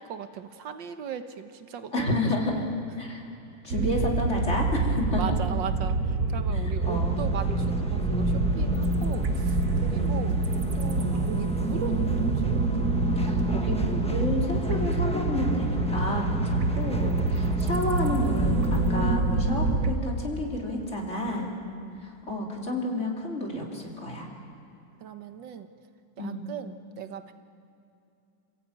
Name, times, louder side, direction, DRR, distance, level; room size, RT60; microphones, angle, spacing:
voice 1, 0.0-2.2 2.5-2.7 5.1-10.4 10.8-12.5 16.4-17.7 21.4-22.1 25.0-25.7 26.2-27.3, right 7 dB, 80° right, 9 dB, 1.7 m, -38 dB
voice 2, 1.9-2.6 3.0-3.3 3.6-5.4 6.9-7.2 9.9-10.2 11.0-11.3 13.2-21.5 22.0-24.3 26.2-26.5, left 1 dB, 40° left, -1 dB, 3.8 m, -31 dB
sound 1, 3.7-19.9, right 3 dB, 55° right, 1.6 m, -26 dB
sound 2, 6.8-19.1, left 2 dB, 5° left, 1.2 m, -32 dB
sound 3, 9.3-14.9, left 1 dB, 60° left, 5.8 m, -49 dB
28.0 x 16.0 x 8.9 m, 2.7 s
omnidirectional pair, 2.0 m